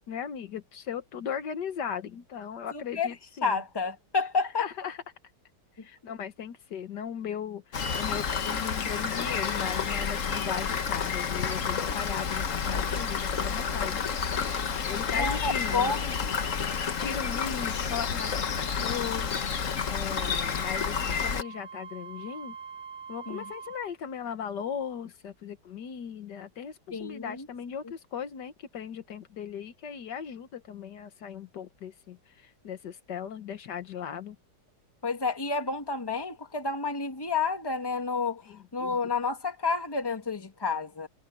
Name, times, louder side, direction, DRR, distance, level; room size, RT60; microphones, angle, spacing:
voice 1, 0.0-3.6 4.6-5.0 5.8-14.1 14.9-15.9 17.0-22.6 23.1-34.4 38.5-39.0, left 8 dB, 75° left, 1.8 m, -38 dB
voice 2, 2.7-3.1 3.4-4.7 15.2-16.1 23.3-23.4 26.9-27.5 35.0-38.4 38.7-41.1, left 4 dB, 15° left, 1.6 m, -30 dB
Rain, 7.7-21.4, left 6 dB, 50° left, 1.5 m, -30 dB
Wind instrument woodwind instrument, 20.2-23.9, right 6 dB, 75° right, 6.8 m, -44 dB
omnidirectional pair, 1.9 m